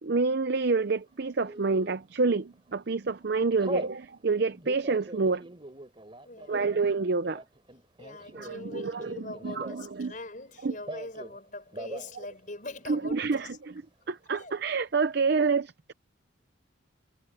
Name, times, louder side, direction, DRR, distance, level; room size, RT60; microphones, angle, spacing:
voice 1, 0.0-5.4 6.5-7.4 8.3-10.1 10.6-10.8 12.9-13.7 14.1-15.9, right 4 dB, 55° right, 0.6 m, -28 dB
Telephone, 1.4-2.0 2.5-2.8 3.1-4.0 4.5-10.0 10.3-11.4 11.7-12.1 12.4-12.5 12.8-13.4, right 1 dB, 25° right, 3.3 m, -42 dB
voice 2, 6.2-6.7 8.0-13.6 14.3-14.5, left 2 dB, 40° left, 5.6 m, -42 dB
head